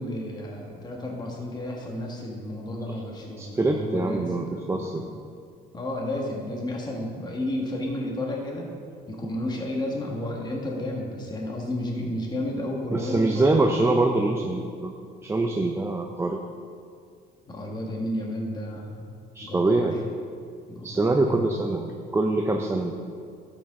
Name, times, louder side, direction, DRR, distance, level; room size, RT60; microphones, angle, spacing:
voice 1, 0.0-5.4 5.7-8.7 9.1-13.8 17.5-19.9 20.7-21.4, left 1 dB, 25° left, -1 dB, 1.5 m, -32 dB
voice 2, 3.4-5.1 12.9-14.9 15.2-16.4 19.3-20.0 20.8-23.0, right 2 dB, 15° right, 2 dB, 0.6 m, -24 dB
12.0 x 8.1 x 3.7 m, 2.2 s
cardioid pair, 110°, 17 cm